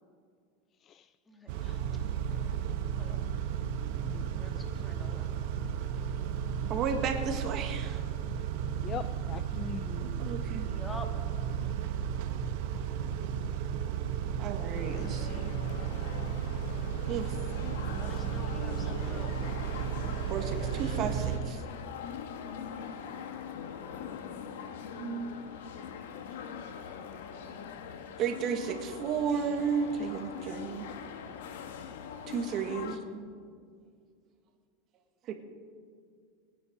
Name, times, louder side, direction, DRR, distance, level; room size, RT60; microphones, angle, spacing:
voice 1, 1.3-1.6 2.3-2.4 3.0-3.3 4.4-6.1 10.6-11.1 17.9-19.5 19.8-20.2, left 2 dB, 10° left, 4 dB, 1.7 m, -48 dB
Car / Idling / Accelerating revving vroom, 1.5-21.4, right 8 dB, 60° right, 1.3 m, -34 dB
voice 2, 3.8-4.7 8.8-10.5, left 8 dB, 30° left, 13 dB, 0.4 m, -43 dB
voice 3, 6.7-8.0 10.0-10.7 14.4-15.5 17.1-17.4 20.3-21.6 22.7-22.8 24.9-25.4 28.2-30.8 32.3-33.3 35.2-35.4, right 6 dB, 40° right, 5 dB, 1.6 m, -33 dB
sound 1, 14.7-33.0, left 7 dB, 80° left, 1.4 m, -42 dB
21.0 x 10.0 x 5.2 m, 2.1 s
supercardioid pair, 140°, 0 cm